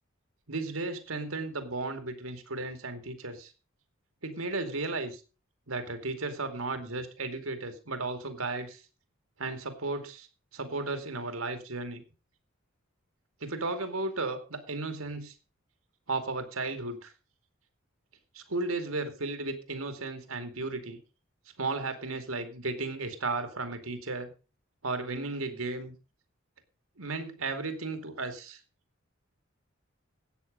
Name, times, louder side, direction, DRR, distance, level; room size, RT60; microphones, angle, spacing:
voice 1, 0.5-3.5 4.2-5.2 5.7-8.8 9.4-10.3 10.5-12.0 13.4-15.3 16.1-17.1 18.3-21.0 21.6-24.3 24.8-25.9 27.0-28.6, right 3 dB, 85° right, 8 dB, 2.4 m, -34 dB
13.0 x 9.1 x 5.3 m, 0.33 s
head